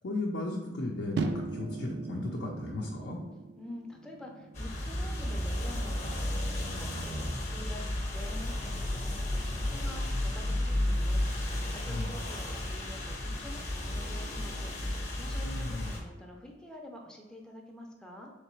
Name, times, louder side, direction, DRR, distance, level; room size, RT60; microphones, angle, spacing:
voice 1, 0.0-3.2 11.9-12.1 15.4-15.9, left 2 dB, 70° left, -2 dB, 0.5 m, -35 dB
sound 1, 1.2-7.4, right 3 dB, 65° right, 0.4 m, -40 dB
voice 2, 3.6-18.3, left 1 dB, 5° left, 0 dB, 0.4 m, -48 dB
sound 2, 4.5-16.0, left 1 dB, 40° left, 0.8 m, -33 dB
3.7 x 3.2 x 3.1 m, 1.2 s
head